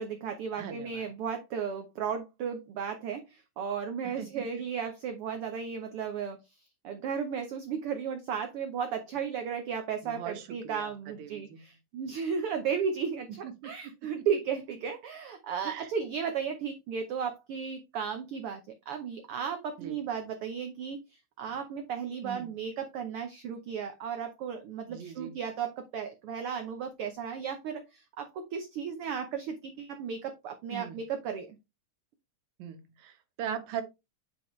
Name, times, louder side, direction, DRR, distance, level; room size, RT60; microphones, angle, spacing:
voice 1, 0.0-6.4 6.8-18.6 18.9-21.0 21.4-31.6, right 7 dB, 90° right, 1.2 m, -34 dB
voice 2, 0.6-1.1 4.0-4.6 10.0-11.6 13.4-14.2 15.6-15.9 19.8-20.0 21.5-21.6 22.2-22.5 24.9-25.4 30.7-31.0 32.6-33.8, right 8 dB, 70° right, 2.3 m, -41 dB
9.1 x 4.7 x 3.1 m
omnidirectional pair, 3.6 m